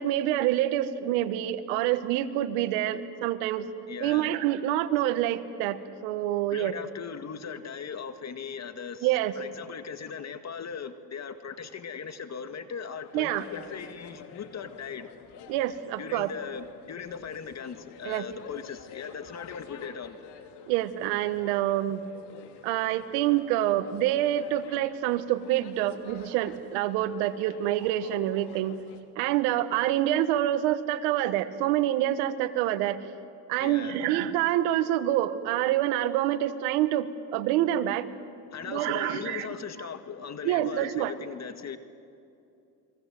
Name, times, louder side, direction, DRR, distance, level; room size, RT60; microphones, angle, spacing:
voice 1, 0.0-3.7 4.0-6.7 9.0-9.3 13.1-13.4 15.5-16.3 18.0-18.2 20.7-22.0 22.6-28.8 29.1-33.0 33.5-38.1 38.6-39.5 40.4-41.1, right 13 dB, 90° right, 11 dB, 1.6 m, -27 dB
voice 2, 3.9-4.3 6.5-15.1 16.0-20.2 33.6-34.0 38.5-41.8, left 6 dB, 40° left, 9 dB, 2.0 m, -39 dB
sound 1, 13.0-29.0, left 7 dB, 70° left, 3.2 m, -49 dB
29.5 x 22.5 x 7.8 m, 2.6 s
supercardioid pair, 95°, 42 cm